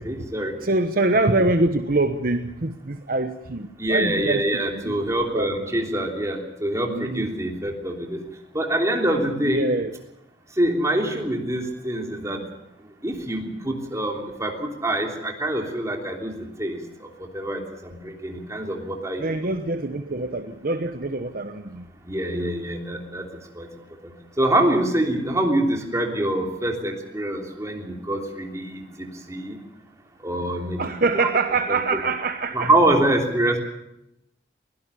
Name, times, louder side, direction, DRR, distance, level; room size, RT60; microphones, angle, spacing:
voice 1, 0.1-0.5 3.8-8.2 8.5-9.6 10.6-12.4 13.0-14.5 14.8-16.8 17.3-19.2 22.1-23.3 23.6-23.7 24.0-29.6 30.2-30.8 32.5-33.6, right 1 dB, 15° right, 1 dB, 3.2 m, -25 dB
voice 2, 0.6-4.9 5.3-5.5 6.9-7.3 9.4-9.9 19.2-21.8 30.8-32.7, right 2 dB, 50° right, 8 dB, 1.0 m, -24 dB
23.0 x 17.0 x 7.0 m, 0.86 s
head